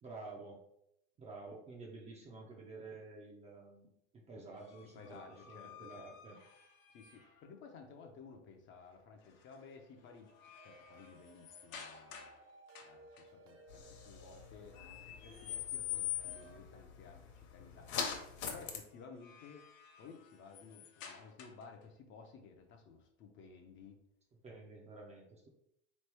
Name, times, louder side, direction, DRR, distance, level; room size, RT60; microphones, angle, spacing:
voice 1, 0.0-0.6 1.2-6.4 24.4-25.5, right 3 dB, 20° right, -1 dB, 0.4 m, -51 dB
sound 1, 4.6-7.5 9.2-9.6 10.0-12.4 12.7-13.2 14.7-16.6 18.9-21.8, left 12 dB, 80° left, 0.9 m, -47 dB
voice 2, 4.9-6.1 6.9-12.3 12.9-19.6 20.0-24.0, left 5 dB, 30° left, 4 dB, 0.5 m, -55 dB
sound 2, 10.5-16.6, right 3 dB, 55° right, 0.7 m, -61 dB
sound 3, 13.7-18.8, left 6 dB, 50° left, 0.9 m, -45 dB
3.8 x 3.1 x 3.3 m, 0.78 s
supercardioid pair, 130°, 39 cm